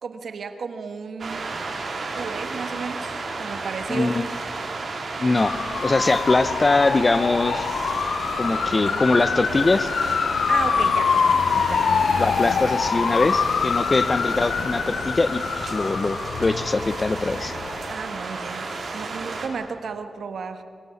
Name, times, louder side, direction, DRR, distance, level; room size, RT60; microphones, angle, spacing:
voice 1, 0.0-1.5 2.1-4.2 10.5-11.1 11.5-11.9 17.9-20.6, right 5 dB, 75° right, 8 dB, 1.5 m, -33 dB
sound 1, 1.2-19.5, right 3 dB, 55° right, 4.0 m, -33 dB
voice 2, 3.9-4.3 5.2-5.6 5.8-7.7 8.4-9.9 12.2-17.6, left 3 dB, 30° left, 14 dB, 0.8 m, -22 dB
sound 2, 5.4-17.9, left 6 dB, 70° left, 0.6 m, -25 dB
24.0 x 18.5 x 8.5 m, 2.5 s
wide cardioid pair, 130°, 0 cm